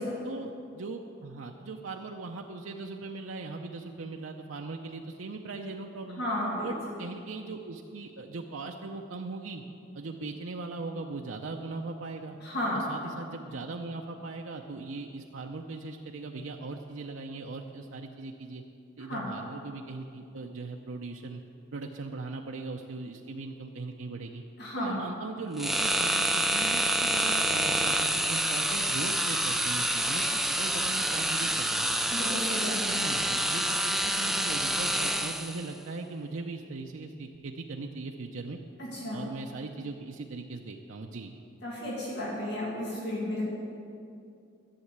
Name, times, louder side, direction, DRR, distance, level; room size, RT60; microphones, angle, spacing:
voice 1, 0.2-6.2 6.6-9.6 9.9-12.4 12.7-18.6 19.0-21.4 21.7-24.4 24.8-32.0 32.6-38.6 39.1-41.3, right 3 dB, 80° right, 2 dB, 0.6 m, -39 dB
voice 2, 6.2-6.7 12.4-12.8 19.1-19.2 24.6-24.9 32.1-33.0 38.8-39.2 41.6-43.4, left 1 dB, 55° left, -5 dB, 2.4 m, -33 dB
sound 1, 25.6-35.7, right 1 dB, ahead, 0.3 m, -27 dB
11.5 x 7.3 x 8.1 m, 2.6 s
head